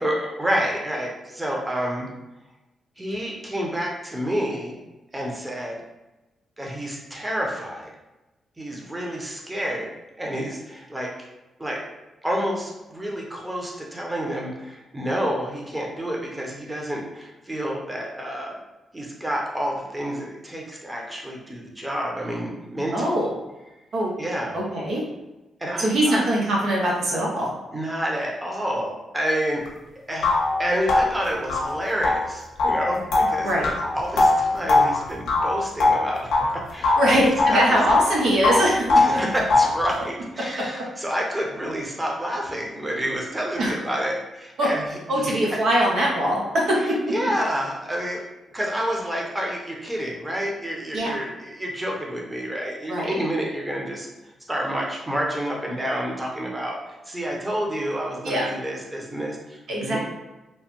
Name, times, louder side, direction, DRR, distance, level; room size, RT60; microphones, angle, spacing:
voice 1, 0.0-2.1 3.0-4.8 5.1-5.8 6.6-7.9 8.6-9.9 10.2-11.1 11.6-11.8 12.2-18.6 18.9-23.2 24.2-24.6 25.6-26.2 27.7-29.6 30.1-30.3 30.6-33.5 33.9-37.8 38.9-45.3 46.8-48.2 48.5-54.1 54.5-60.0, equal, 15° right, -1 dB, 0.8 m, -29 dB
voice 2, 22.9-23.4 23.9-24.1 24.5-25.0 25.8-27.5 33.4-33.7 37.0-39.2 43.6-43.7 44.6-44.7 45.1-47.0 50.9-51.2 52.9-53.1 58.2-58.5 59.7-60.0, equal, 75° right, -3 dB, 0.7 m, -22 dB
sound 1, 29.7-29.8 30.2-36.5 36.8-38.1 38.4-39.8, left 3 dB, 85° left, 0.6 m, -21 dB
3.1 x 2.1 x 2.9 m, 1.0 s
supercardioid pair, 55°, 0 cm